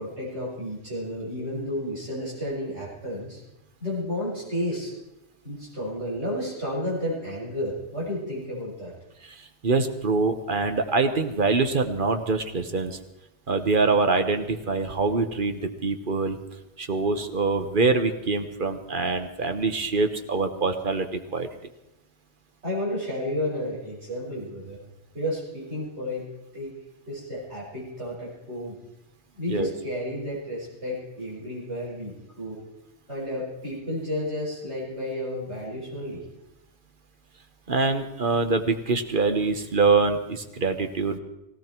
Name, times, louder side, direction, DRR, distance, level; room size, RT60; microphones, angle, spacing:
voice 1, 0.0-3.4 3.8-4.9 5.4-8.9 22.6-24.8 25.1-26.3 26.5-26.7 27.1-28.8 29.3-32.6 33.1-36.2, left 1 dB, 70° right, -5 dB, 6.5 m, -32 dB
voice 2, 9.6-13.0 13.5-16.4 16.8-21.5 29.5-29.7 37.7-41.2, right 4 dB, 50° right, 8 dB, 1.3 m, -24 dB
18.0 x 17.5 x 4.5 m, 0.93 s
omnidirectional pair, 1.2 m